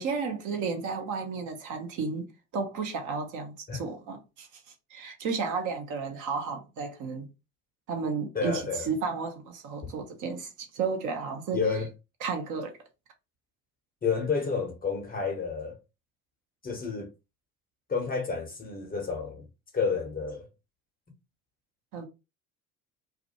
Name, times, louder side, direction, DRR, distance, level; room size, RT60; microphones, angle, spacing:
voice 1, 0.0-4.6 4.9-7.3 7.9-11.6 12.2-12.7 21.9-22.1, right 5 dB, 45° right, 0.8 m, -33 dB
voice 2, 8.3-8.9 9.8-9.9 11.5-11.9 14.0-15.8 16.6-17.1 17.9-19.5 19.7-20.5, left 5 dB, 20° left, 0.7 m, -30 dB
2.4 x 2.2 x 2.7 m
figure-of-eight pair, 60°, 44 cm